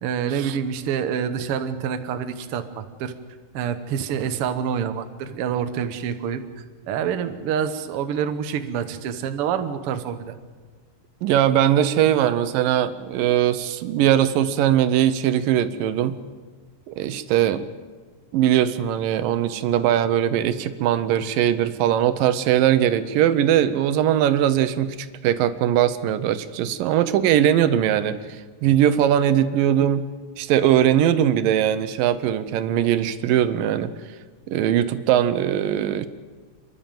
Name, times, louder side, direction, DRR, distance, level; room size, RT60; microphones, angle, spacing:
voice 1, 0.0-3.1 3.5-6.4 6.9-10.3, right 8 dB, 65° right, 9 dB, 1.5 m, -27 dB
voice 2, 11.2-16.2 16.9-17.6 18.3-25.0 25.2-28.2 28.6-30.0 30.4-33.9 34.5-36.1, right 11 dB, 85° right, 12 dB, 2.6 m, -20 dB
28.0 x 11.5 x 9.0 m, 1.4 s
omnidirectional pair, 3.9 m